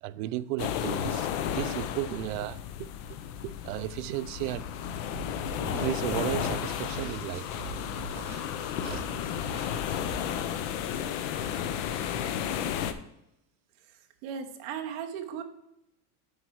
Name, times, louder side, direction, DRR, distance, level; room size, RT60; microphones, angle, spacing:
voice 1, 0.0-2.9 3.4-4.7 5.6-7.5 8.1-8.4 8.8-9.1, right 15 dB, 70° right, 0.5 m, -34 dB
sound 1, 0.6-12.9, left 9 dB, 55° left, 0.7 m, -33 dB
sound 2, 5.1-10.2, right 3 dB, 15° right, 1.7 m, -44 dB
voice 2, 14.2-15.4, right 8 dB, 45° right, 1.0 m, -36 dB
8.2 x 4.6 x 4.6 m
cardioid pair, 180°, 43 cm